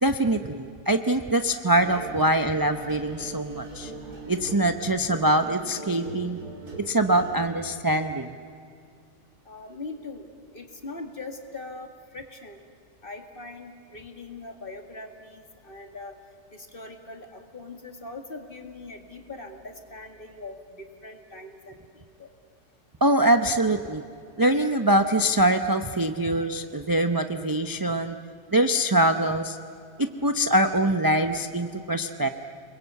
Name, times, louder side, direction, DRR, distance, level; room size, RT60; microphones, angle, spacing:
voice 1, 0.0-3.9 4.3-6.4 6.8-8.3 23.0-24.0 24.4-28.2 28.5-29.6 30.0-32.3, right 1 dB, 25° right, 7 dB, 0.5 m, -23 dB
sound 1, 1.7-7.5, right 3 dB, 75° right, 4.1 m, -41 dB
voice 2, 9.5-10.3 10.5-12.6 13.0-16.1 16.5-22.3, left 3 dB, 35° left, 5 dB, 2.3 m, -41 dB
29.5 x 21.5 x 8.2 m, 2.4 s
omnidirectional pair, 1.7 m